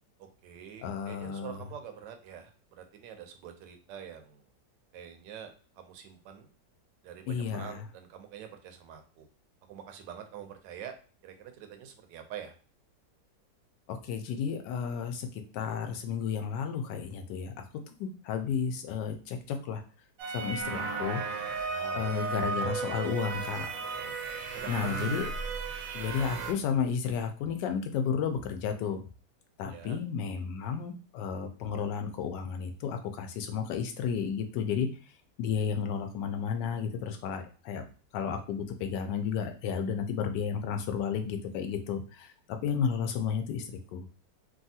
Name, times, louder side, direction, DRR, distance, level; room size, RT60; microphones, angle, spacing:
voice 1, 0.2-4.4 4.9-6.5 7.0-9.3 9.7-10.9 11.2-12.6 21.6-22.2 24.5-25.1 29.7-30.0, right 8 dB, 85° right, 6 dB, 1.3 m, -45 dB
voice 2, 0.8-1.6 7.3-7.8 13.9-15.3 15.5-19.8 20.3-21.2 21.9-23.7 24.7-25.3 25.9-29.0 29.6-34.9 35.4-37.8 38.1-44.0, left 7 dB, 80° left, 6 dB, 1.2 m, -32 dB
sound 1, 20.2-26.5, right 4 dB, 65° right, 0.8 m, -34 dB
3.3 x 2.3 x 2.7 m, 0.38 s
omnidirectional pair, 1.9 m